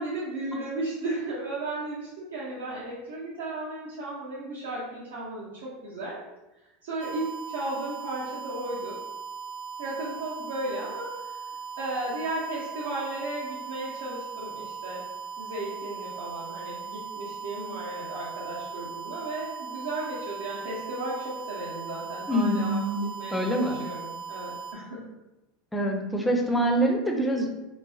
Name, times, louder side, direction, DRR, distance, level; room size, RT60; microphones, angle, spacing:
voice 1, 0.0-6.2 6.8-9.0 9.8-11.3 11.8-15.0 15.4-25.0, right 2 dB, 70° right, -9 dB, 0.7 m, -35 dB
sound 1, 7.0-24.7, right 6 dB, 50° right, 0.3 m, -39 dB
voice 2, 22.3-23.0 23.3-23.8 25.7-27.5, right 1 dB, 5° left, 1 dB, 0.5 m, -25 dB
3.1 x 2.0 x 2.6 m, 1.0 s
hypercardioid pair, 85°, 0 cm